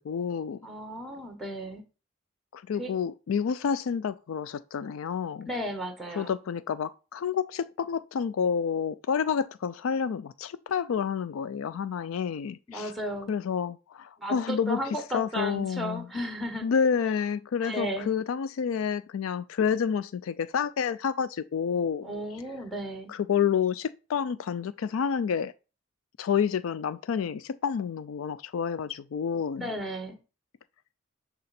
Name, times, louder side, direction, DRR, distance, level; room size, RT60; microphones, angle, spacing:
voice 1, 0.0-0.6 2.5-5.5 6.2-12.9 13.3-14.8 15.1-16.0 16.6-22.1 23.1-25.5 26.2-29.7, left 7 dB, 85° left, 0.4 m, -29 dB
voice 2, 0.6-1.8 2.8-2.9 5.5-6.3 12.7-13.3 14.2-16.7 17.6-18.1 22.0-23.1 29.6-30.2, equal, ahead, 1.2 m, -34 dB
10.5 x 4.1 x 4.3 m
head